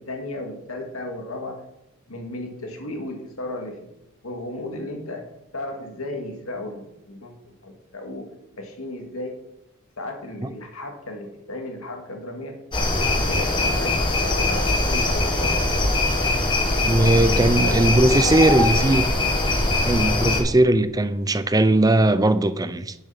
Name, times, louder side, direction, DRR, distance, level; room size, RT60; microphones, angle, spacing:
voice 1, 0.0-1.6 2.1-3.9 4.2-5.3 5.5-8.3 8.6-9.3 10.0-12.6 12.9-16.1 17.2-18.9, left 1 dB, 75° left, 2.1 m, -35 dB
sound 1, 12.7-20.4, left 2 dB, 20° left, 1.4 m, -21 dB
voice 2, 16.8-19.0 19.8-22.9, right 2 dB, 15° right, 0.5 m, -19 dB
9.9 x 7.1 x 5.9 m
head